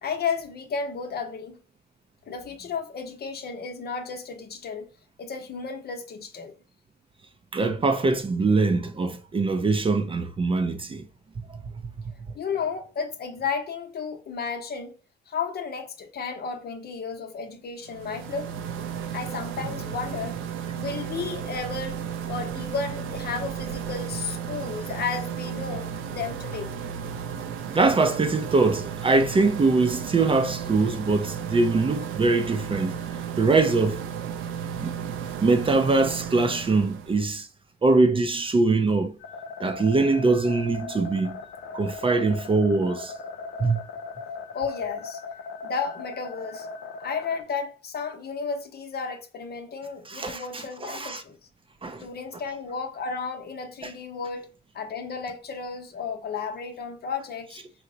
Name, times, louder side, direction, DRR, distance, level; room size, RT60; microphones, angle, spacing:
voice 1, 0.0-1.6 2.3-4.9 5.2-6.5 12.3-14.9 15.3-18.5 19.1-20.4 20.8-22.0 22.3-26.8 44.5-45.2 45.6-46.7 47.0-51.4 52.0-54.5 54.7-57.6, left 5 dB, 55° left, 0.8 m, -33 dB
voice 2, 7.5-11.1 11.5-11.6 19.6-19.7 27.7-33.0 33.4-34.0 34.8-34.9 35.2-37.5 37.8-39.1 39.6-41.4 41.7-43.1 43.6-43.8 50.1-51.2 51.8-52.1 53.8-53.9, right 3 dB, 25° right, 0.5 m, -23 dB
sound 1, 17.8-37.2, right 8 dB, 85° right, 0.5 m, -34 dB
sound 2, 39.2-47.4, left 3 dB, 85° left, 0.6 m, -38 dB
4.4 x 2.1 x 3.8 m
cardioid pair, 90°, 20 cm